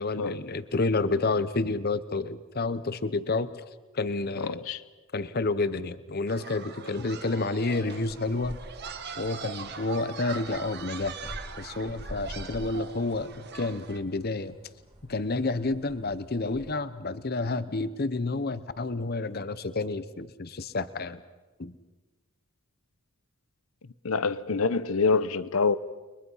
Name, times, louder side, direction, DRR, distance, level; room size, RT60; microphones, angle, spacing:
voice 1, 0.0-3.5 3.9-4.7 5.1-8.6 9.2-14.6 15.1-21.2 21.6-21.7, left 3 dB, 45° left, 0.9 m, -30 dB
voice 2, 4.4-4.8 24.0-25.8, left 4 dB, 75° left, 0.8 m, -26 dB
sound 1, 6.3-14.0, right 5 dB, 50° right, 1.6 m, -41 dB
sound 2, 7.8-16.7, equal, 25° right, 2.4 m, -47 dB
30.0 x 23.0 x 5.6 m
head